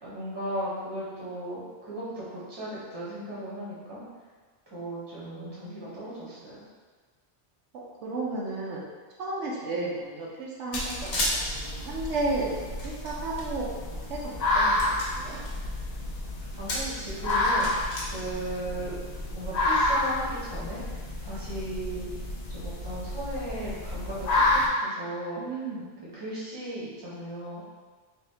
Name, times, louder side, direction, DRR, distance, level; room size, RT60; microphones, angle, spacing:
voice 1, 0.0-4.0 4.7-6.5 16.6-18.9 19.3-20.8 21.2-22.1 22.5-25.5 26.1-27.6, right 1 dB, 25° right, -8 dB, 0.9 m, -36 dB
voice 2, 5.2-6.2 7.7-8.8 9.2-15.4 18.8-18.9 25.4-25.8, right 2 dB, 85° right, -4 dB, 1.0 m, -34 dB
sound 1, 10.7-11.3 12.4-13.4 14.0-14.1 14.6-15.5 16.4-17.0 17.3-18.0, left 1 dB, 80° left, 1.1 m, -32 dB
sound 2, 10.7-24.7, left 2 dB, 65° left, 0.4 m, -30 dB
3.4 x 2.7 x 2.8 m, 1.4 s
omnidirectional pair, 1.2 m